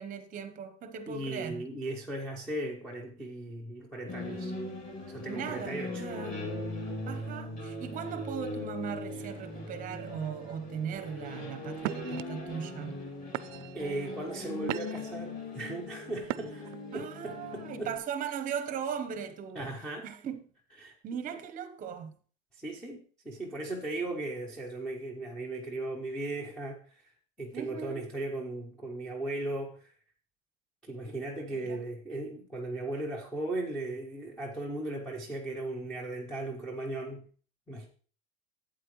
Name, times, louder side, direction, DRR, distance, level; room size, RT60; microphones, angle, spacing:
voice 1, 0.0-1.6 5.3-6.4 7.1-13.0 16.9-19.7 20.0-20.4 21.0-22.2 27.5-28.1 31.5-31.8, right 7 dB, 20° right, 0.9 m, -38 dB
voice 2, 1.1-4.5 5.1-6.0 13.7-17.9 19.6-20.1 20.8-20.9 22.5-27.0 27.4-29.9 30.8-37.3 37.7-37.9, right 2 dB, ahead, 0.6 m, -37 dB
sound 1, 4.1-18.0, left 2 dB, 20° left, 2.6 m, -40 dB
sound 2, 11.0-11.2 11.8-12.2 12.9-13.0 13.3-13.8 14.3-15.2 16.2-16.8, right 17 dB, 70° right, 0.5 m, -37 dB
12.0 x 8.6 x 3.1 m
supercardioid pair, 165°, 39 cm